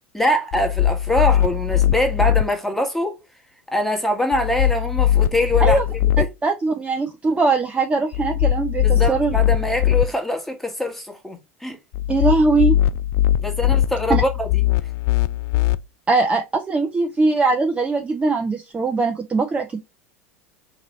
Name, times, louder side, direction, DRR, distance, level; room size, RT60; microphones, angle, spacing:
voice 1, 0.1-3.2 3.7-5.8 6.2-6.3 8.8-11.8 13.4-14.6, left 1 dB, 5° left, 1.3 m, -23 dB
sound 1, 0.5-2.4 4.3-6.2 8.1-10.0 11.9-15.7, left 12 dB, 50° left, 0.3 m, -20 dB
voice 2, 6.4-9.4 12.1-12.8 14.1-14.2 16.1-19.8, right 3 dB, 15° right, 0.6 m, -20 dB
3.9 x 3.1 x 4.0 m
figure-of-eight pair, 80°, 7 cm